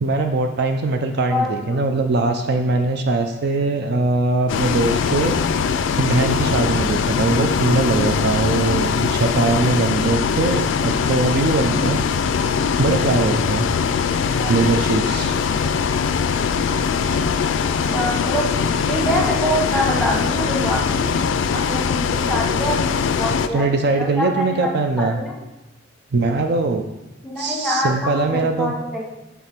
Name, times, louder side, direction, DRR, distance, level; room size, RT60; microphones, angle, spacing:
voice 1, 0.0-5.4 6.0-12.0 12.8-13.7 14.5-15.3 23.5-25.2 26.1-26.9 27.4-28.7, right 3 dB, 60° right, 5 dB, 0.4 m, -21 dB
Bus, 4.5-23.5, left 6 dB, 85° left, 0.3 m, -21 dB
voice 2, 17.6-18.5 18.9-21.1 21.5-23.6 24.0-24.7 25.0-25.4 27.2-29.2, equal, ahead, -3 dB, 1.1 m, -25 dB
6.8 x 3.4 x 4.3 m, 0.96 s
head